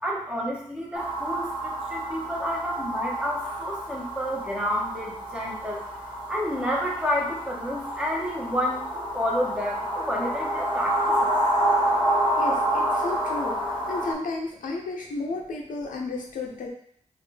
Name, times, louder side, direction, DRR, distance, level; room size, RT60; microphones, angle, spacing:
voice 1, 0.0-5.8 6.3-11.3, equal, 10° right, -3 dB, 1.2 m, -30 dB
sound 1, 0.9-14.1, right 1 dB, 35° right, 1.5 m, -28 dB
voice 2, 12.4-13.6 13.9-16.7, left 3 dB, 85° left, 0 dB, 0.6 m, -33 dB
4.1 x 2.6 x 3.2 m, 0.64 s
cardioid pair, 45°, 13 cm